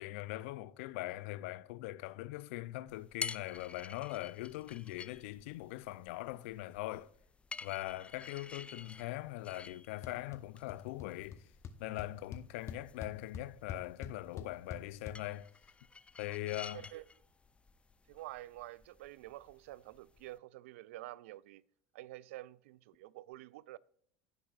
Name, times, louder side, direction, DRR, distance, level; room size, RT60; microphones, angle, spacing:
voice 1, 0.0-7.1 7.6-11.4 11.8-15.5 16.2-16.9, left 17 dB, 75° left, 0.4 m, -41 dB
sound 1, 2.9-20.4, left 4 dB, 15° left, 0.4 m, -51 dB
sound 2, 10.0-10.4 10.7-11.1 11.3-11.4 11.6-15.2, left 7 dB, 40° left, 0.9 m, -44 dB
voice 2, 16.7-17.1 18.1-21.6 21.9-23.8, right 16 dB, 80° right, 0.3 m, -49 dB
16.0 x 5.9 x 2.4 m
hypercardioid pair, 90°, 7 cm